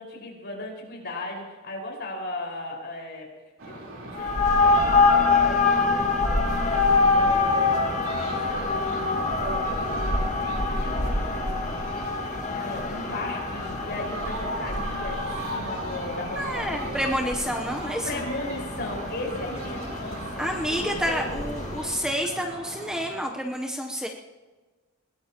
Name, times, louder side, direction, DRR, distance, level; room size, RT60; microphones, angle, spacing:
voice 1, 0.0-3.3 3.6-6.6 7.1-7.9 8.3-10.3 10.7-11.8 12.6-17.4 18.0-21.9, left 2 dB, 50° left, -2 dB, 5.2 m, -37 dB
sound 1, 3.6-23.2, right 2 dB, 60° right, 3.9 m, -39 dB
sound 2, 4.1-22.1, left 3 dB, 35° left, 2.0 m, -26 dB
voice 2, 16.4-18.2 20.4-24.1, equal, 5° right, 1 dB, 0.8 m, -29 dB
21.5 x 19.0 x 3.0 m, 1.3 s
head